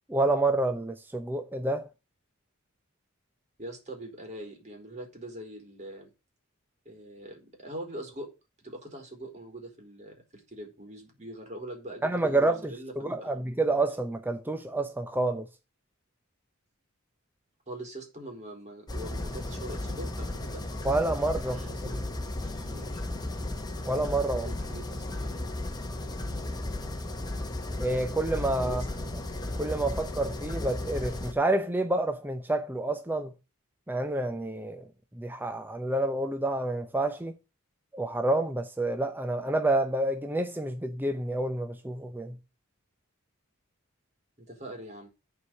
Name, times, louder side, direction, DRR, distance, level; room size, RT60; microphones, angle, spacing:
voice 1, 0.1-1.9 12.0-15.5 20.8-21.6 23.9-24.5 27.8-28.8 29.6-33.3 33.9-34.9 35.1-37.4 37.9-42.4, right 2 dB, 10° right, 0.6 m, -28 dB
voice 2, 3.6-6.1 6.9-8.3 8.6-13.3 17.7-20.7 21.5-22.0 22.4-23.1 24.3-25.4 28.6-28.9 44.4-45.1, right 1 dB, 35° right, 3.8 m, -43 dB
sound 1, 18.9-31.3, left 1 dB, 20° left, 1.3 m, -35 dB
8.7 x 4.8 x 7.5 m
head